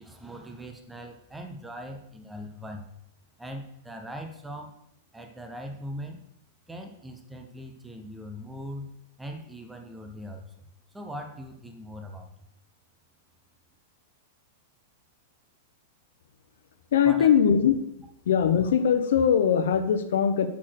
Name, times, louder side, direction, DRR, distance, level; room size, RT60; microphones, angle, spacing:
voice 1, 0.0-2.9 3.4-4.8 5.1-6.2 6.7-12.3 17.0-17.3, equal, 5° right, 4 dB, 0.5 m, -41 dB
voice 2, 16.9-17.7 18.3-20.5, left 8 dB, 70° left, 9 dB, 0.7 m, -21 dB
5.7 x 4.3 x 6.3 m, 0.77 s
supercardioid pair, 180°, 0 cm